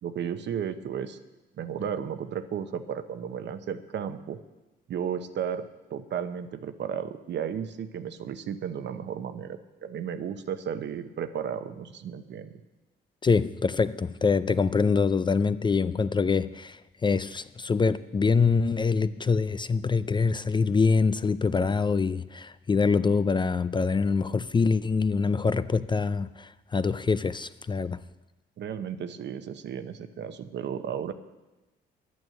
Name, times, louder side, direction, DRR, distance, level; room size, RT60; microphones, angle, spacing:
voice 1, 0.0-1.2 1.6-4.4 4.9-12.6 28.6-31.1, right 8 dB, 65° right, 0.9 m, -34 dB
voice 2, 13.2-28.0, left 4 dB, 25° left, 0.4 m, -25 dB
10.5 x 9.5 x 7.7 m
cardioid pair, 90°, 20 cm